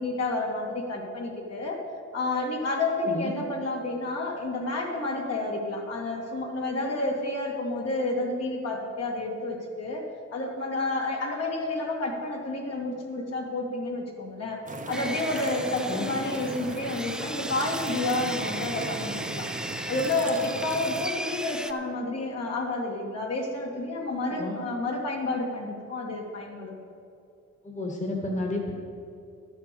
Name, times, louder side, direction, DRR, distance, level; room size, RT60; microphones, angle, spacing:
voice 1, 0.0-1.8 2.1-10.0 10.3-14.6 14.9-19.5 19.9-26.8, left 2 dB, 55° left, -1 dB, 2.3 m, -30 dB
sound 1, 14.7-21.1, right 3 dB, 25° right, 1.0 m, -37 dB
Sawing, 14.9-21.7, right 1 dB, ahead, 0.4 m, -36 dB
voice 2, 27.6-28.7, left 2 dB, 25° left, 0 dB, 1.8 m, -31 dB
11.5 x 7.1 x 6.8 m, 2.5 s
cardioid pair, 90°, 30 cm